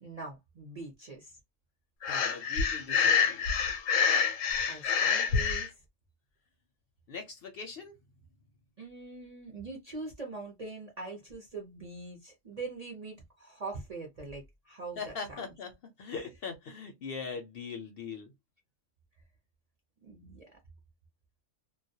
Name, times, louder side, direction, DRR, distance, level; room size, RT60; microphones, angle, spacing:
voice 1, 0.0-1.4 4.1-4.4 4.6-5.8 8.8-15.5 20.0-20.5, right 3 dB, 45° right, 0.5 m, -43 dB
Breathing, 2.0-5.7, left 6 dB, 80° left, 1.0 m, -27 dB
voice 2, 2.0-3.5 7.1-8.0 15.0-18.3, left 5 dB, 60° left, 0.6 m, -41 dB
2.2 x 2.1 x 2.6 m
omnidirectional pair, 1.3 m